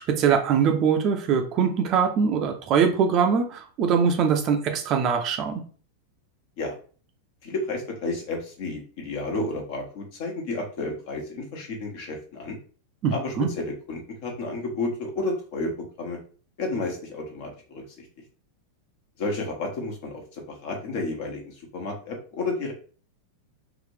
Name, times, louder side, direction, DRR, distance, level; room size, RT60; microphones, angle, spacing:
voice 1, 0.1-5.6 13.0-13.5, right 7 dB, 35° right, 5 dB, 0.6 m, -22 dB
voice 2, 7.4-12.6 13.1-16.2 16.6-18.1 19.2-22.7, left 2 dB, 50° left, 1 dB, 1.2 m, -31 dB
4.0 x 2.5 x 3.3 m, 0.40 s
figure-of-eight pair, 90°, 0 cm